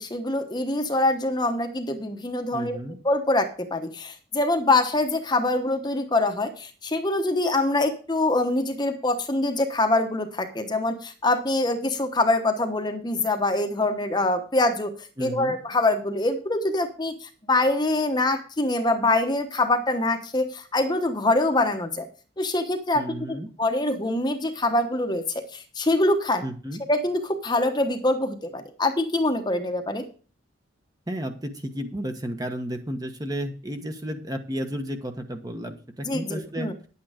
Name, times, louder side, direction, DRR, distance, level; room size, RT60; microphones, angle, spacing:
voice 1, 0.0-2.8 3.0-22.1 22.4-26.4 26.9-30.0 36.0-36.7, left 2 dB, 20° left, 6 dB, 1.1 m, -24 dB
voice 2, 2.5-3.0 15.2-15.6 22.9-23.5 26.4-26.8 31.1-36.7, equal, 20° right, 6 dB, 1.1 m, -32 dB
10.5 x 8.6 x 5.0 m, 0.37 s
head